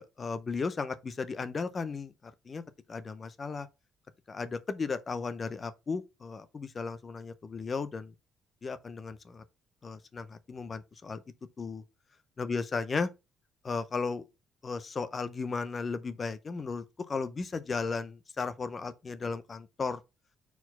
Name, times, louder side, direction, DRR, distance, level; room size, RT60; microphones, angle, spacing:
voice 1, 0.0-2.6 2.9-3.7 4.3-8.1 8.6-9.4 9.8-11.2 11.6-11.8 12.4-13.1 13.6-14.2 14.6-20.0, left 4 dB, 25° left, 0.6 m, -35 dB
4.7 x 4.1 x 5.5 m
cardioid pair, 175°, 0 cm